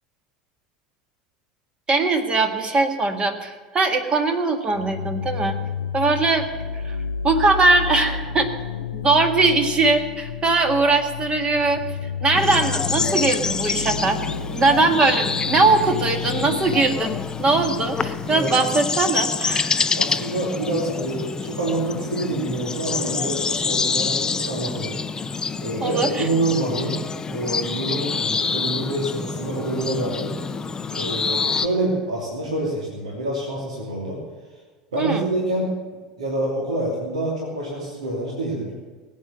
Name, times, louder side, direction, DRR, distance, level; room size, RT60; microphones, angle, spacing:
voice 1, 1.9-5.5 5.9-6.5 6.7-7.0 7.2-8.5 8.9-11.8 12.2-14.2 14.5-17.1 17.4-20.0 25.8-26.3 35.0-35.3, right 3 dB, 25° right, 5 dB, 1.8 m, -20 dB
sound 1, 4.7-18.4, left 6 dB, 75° left, 0.4 m, -31 dB
sound 2, 12.3-31.7, left 5 dB, 20° left, 0.6 m, -27 dB
voice 2, 18.3-18.7 19.9-25.0 25.6-27.0 27.3-30.4 30.9-34.2 34.9-35.7 36.2-38.7, right 1 dB, 75° right, -3 dB, 2.8 m, -27 dB
18.5 x 8.9 x 6.9 m, 1.4 s
figure-of-eight pair, 75°, 4 cm